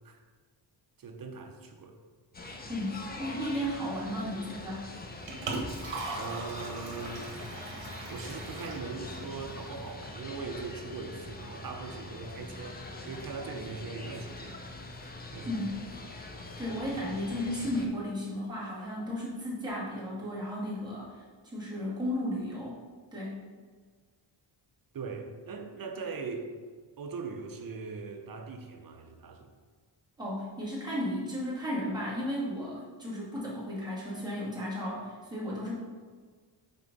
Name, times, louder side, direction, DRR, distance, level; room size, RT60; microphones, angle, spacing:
voice 1, 1.0-2.0 6.1-7.3 7.9-14.6 15.0-15.5 16.7-16.8 24.9-26.5 27.0-29.5, right 4 dB, 50° right, 3 dB, 0.8 m, -40 dB
sound 1, 2.3-17.9, left 2 dB, 20° left, 0.6 m, -43 dB
voice 2, 2.7-4.9 15.4-15.8 16.2-16.3 16.6-22.7 23.1-23.4 30.2-35.7, left 1 dB, 10° right, -8 dB, 2.1 m, -34 dB
Liquid, 4.9-9.9, right 3 dB, 75° right, 1.4 m, -40 dB
6.0 x 4.6 x 5.3 m, 1.5 s
wide cardioid pair, 160°, 45 cm